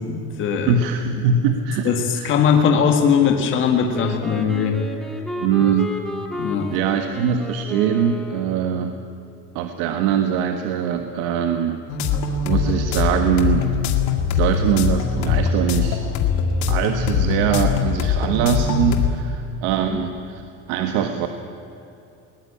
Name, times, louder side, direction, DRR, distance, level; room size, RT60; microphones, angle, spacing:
voice 1, 0.1-0.8 1.1-1.3 1.8-4.8 5.6-5.7 6.4-6.7 12.1-12.2 19.8-20.0, left 7 dB, 35° left, 3 dB, 1.9 m, -20 dB
voice 2, 0.7-2.3 5.4-5.9 6.7-9.0 9.5-11.8 12.4-13.7 14.3-16.0 16.7-20.4 20.7-21.3, right 7 dB, 75° right, 6 dB, 1.6 m, -22 dB
Wind instrument woodwind instrument, 3.9-8.9, equal, ahead, 1.7 m, -33 dB
sound 1, 11.9-19.1, left 6 dB, 50° left, 2.2 m, -22 dB
21.5 x 19.5 x 8.7 m, 2.8 s
cardioid pair, 175°, 35 cm